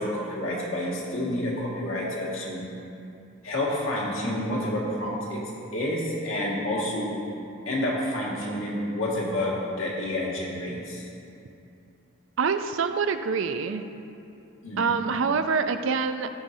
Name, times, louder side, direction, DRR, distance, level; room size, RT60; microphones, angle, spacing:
voice 1, 0.0-2.7 3.4-5.4 5.7-7.1 7.7-11.1 14.6-14.9, left 1 dB, 75° left, -4 dB, 1.8 m, -29 dB
voice 2, 12.4-13.8 14.8-16.3, right 5 dB, 65° right, 9 dB, 0.4 m, -25 dB
16.5 x 5.5 x 2.7 m, 2.7 s
head